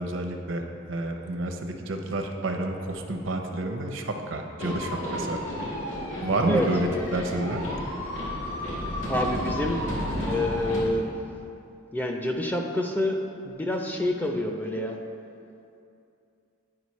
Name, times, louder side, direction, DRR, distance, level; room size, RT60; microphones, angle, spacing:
voice 1, 0.0-5.4 6.2-7.6, right 1 dB, 75° right, 4 dB, 0.6 m, -29 dB
sound 1, 4.6-10.8, left 1 dB, 85° left, 1.7 m, -32 dB
voice 2, 6.5-7.1 9.1-9.8 10.2-11.2 11.9-13.2 13.4-15.0, left 1 dB, 10° left, 2 dB, 0.4 m, -27 dB
9.6 x 4.9 x 3.1 m, 2.6 s
head